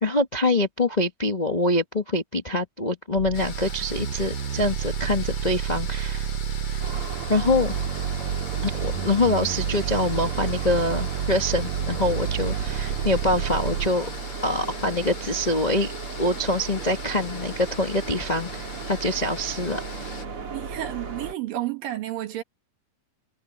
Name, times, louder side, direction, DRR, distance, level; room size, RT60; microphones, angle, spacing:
voice 1, 0.0-6.3 6.7-6.8 7.3-7.7 8.6-14.1 14.4-15.9 16.2-19.8, left 2 dB, 75° left, 0.4 m, -25 dB
sound 1, 3.2-13.9, right 9 dB, 65° right, 1.7 m, -30 dB
sound 2, 3.3-20.2, left 5 dB, 55° left, 5.5 m, -41 dB
sound 3, 6.8-21.3, right 5 dB, 40° right, 3.6 m, -35 dB
voice 2, 20.5-22.4, right 14 dB, 85° right, 3.4 m, -31 dB
omnidirectional pair, 3.8 m